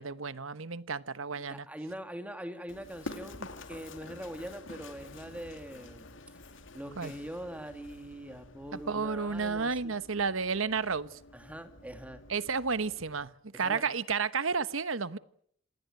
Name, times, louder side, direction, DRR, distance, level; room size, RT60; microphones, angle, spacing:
voice 1, 0.0-1.6 7.0-7.1 8.9-11.2 12.3-15.2, right 5 dB, 75° right, 15 dB, 1.1 m, -32 dB
voice 2, 1.4-3.4 3.7-6.1 6.7-10.0 11.3-12.2 13.6-13.8, equal, 5° right, 7 dB, 2.7 m, -43 dB
Run, 2.7-13.2, left 2 dB, 65° left, 2.6 m, -49 dB
27.0 x 19.0 x 9.1 m, 0.67 s
head